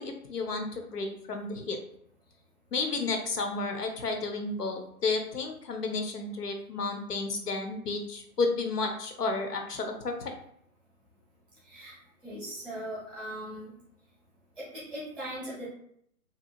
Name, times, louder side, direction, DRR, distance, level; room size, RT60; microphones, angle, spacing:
voice 1, 0.0-1.8 2.7-10.3, left 3 dB, 85° left, 4 dB, 0.8 m, -32 dB
voice 2, 11.6-11.9 12.2-13.7 14.6-15.7, right 1 dB, ahead, -9 dB, 0.6 m, -39 dB
2.7 x 2.3 x 2.6 m, 0.69 s
figure-of-eight pair, 135°, 46 cm